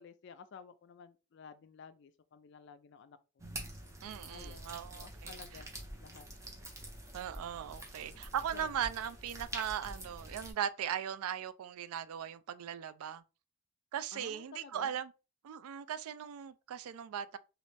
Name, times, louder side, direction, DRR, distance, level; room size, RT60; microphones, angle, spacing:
voice 1, 0.0-3.4 4.3-6.3 8.5-8.9 14.1-15.0, left 5 dB, 55° left, 0.3 m, -53 dB
sound 1, 3.4-10.5, right 1 dB, 15° right, 0.6 m, -46 dB
voice 2, 4.0-5.4 7.1-13.2 13.9-15.1 15.4-17.4, right 9 dB, 85° right, 0.3 m, -38 dB
3.1 x 2.4 x 3.2 m
head